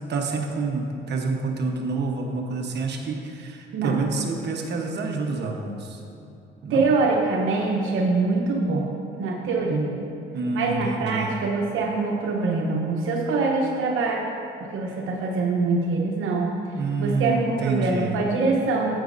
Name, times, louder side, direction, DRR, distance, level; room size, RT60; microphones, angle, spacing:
voice 1, 0.0-6.0 6.6-6.8 10.3-11.3 16.7-18.1, right 3 dB, 60° right, 1 dB, 1.1 m, -28 dB
voice 2, 6.7-8.9 9.2-10.0 10.5-14.3 14.6-16.6 17.0-19.0, right 3 dB, 80° right, -1 dB, 0.9 m, -24 dB
11.5 x 8.2 x 2.6 m, 2.9 s
cardioid pair, 90°, 20 cm